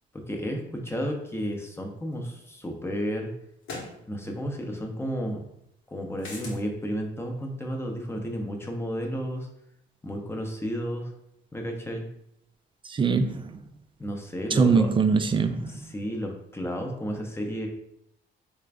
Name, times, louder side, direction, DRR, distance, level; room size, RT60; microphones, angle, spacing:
voice 1, 0.3-3.3 4.1-5.4 5.9-9.5 10.0-11.1 11.5-12.1 14.0-14.9 15.7-17.7, equal, 10° left, 2 dB, 0.7 m, -32 dB
sound 1, 2.2-2.3 3.6-4.0 6.2-6.6, left 3 dB, 75° left, 1.1 m, -38 dB
voice 2, 12.9-13.6 14.5-15.8, right 5 dB, 25° right, 9 dB, 0.3 m, -23 dB
3.7 x 2.5 x 3.4 m, 0.78 s
cardioid pair, 90°, 20 cm